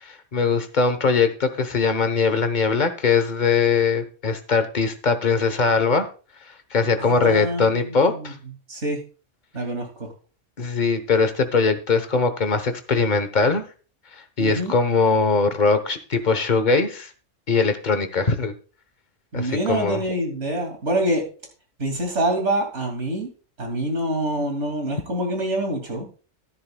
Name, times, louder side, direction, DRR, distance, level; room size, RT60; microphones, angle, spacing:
voice 1, 0.0-6.1 6.7-8.3 10.6-13.6 14.4-17.1 17.5-18.5 19.3-20.0, left 4 dB, 40° left, 10 dB, 1.1 m, -21 dB
voice 2, 7.0-8.3 8.7-9.0 9.5-10.1 14.4-14.7 19.3-21.2 21.8-23.3 23.6-26.1, right 1 dB, 70° right, 3 dB, 2.8 m, -26 dB
13.0 x 11.0 x 2.3 m, 0.37 s
omnidirectional pair, 1.2 m